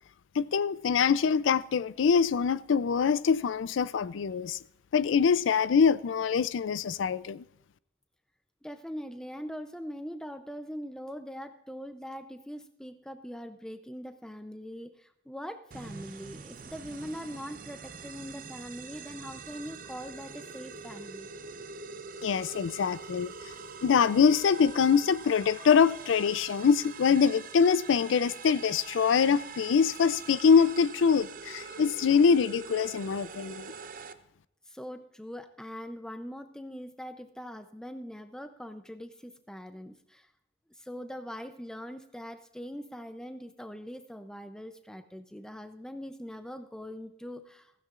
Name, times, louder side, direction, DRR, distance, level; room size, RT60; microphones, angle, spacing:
voice 1, 0.4-4.6 4.9-7.4 22.2-23.3 23.8-33.7, left 6 dB, 85° left, 0.4 m, -24 dB
voice 2, 8.6-21.3 34.7-40.3 40.8-47.7, equal, 5° left, 0.5 m, -42 dB
sound 1, 15.7-34.1, right 5 dB, 50° right, 0.6 m, -44 dB
15.5 x 15.0 x 2.5 m
head